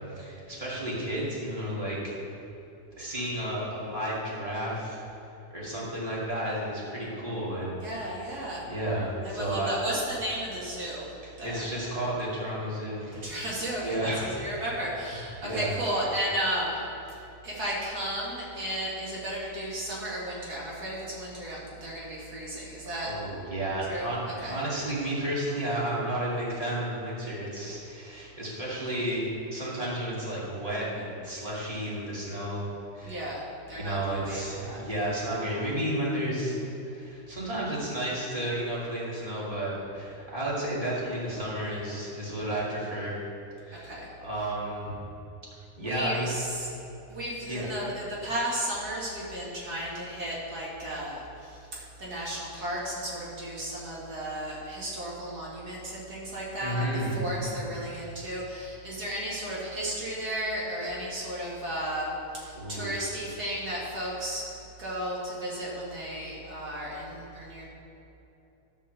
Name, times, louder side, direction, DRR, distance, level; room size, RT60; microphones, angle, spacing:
voice 1, 0.1-2.0 3.0-5.0 5.5-8.4 8.7-9.7 11.2-13.3 13.8-14.3 15.4-15.7 23.0-33.2 33.8-36.6 36.9-43.2 43.6-43.9 44.2-45.0 45.8-46.5 47.5-47.7 56.6-57.6 62.5-62.9, right 1 dB, 25° right, -7 dB, 2.7 m, -32 dB
voice 2, 7.8-8.7 9.2-11.1 11.4-11.6 13.1-16.8 17.1-23.1 23.9-24.1 24.4-24.6 33.0-34.8 43.7-44.1 45.8-46.7 47.1-51.7 52.0-56.8 57.1-64.5 64.8-67.7, right 1 dB, 80° right, -5 dB, 2.6 m, -34 dB
12.0 x 5.6 x 6.7 m, 2.9 s
omnidirectional pair, 1.6 m